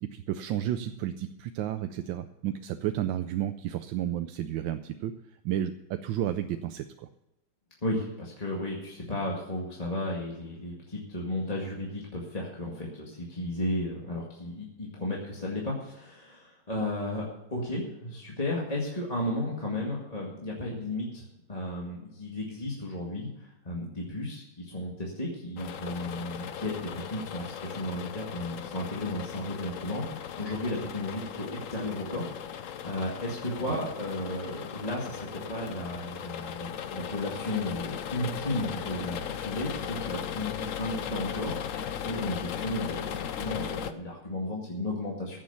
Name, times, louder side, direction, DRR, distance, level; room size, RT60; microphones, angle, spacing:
voice 1, 0.0-5.1 5.4-7.1 33.7-33.8, right 11 dB, 80° right, 9 dB, 1.3 m, -32 dB
voice 2, 7.8-45.4, left 1 dB, 20° left, -3 dB, 2.0 m, -34 dB
sound 1, 25.6-43.9, left 8 dB, 65° left, 0.8 m, -37 dB
15.5 x 7.3 x 7.1 m, 0.91 s
omnidirectional pair, 2.1 m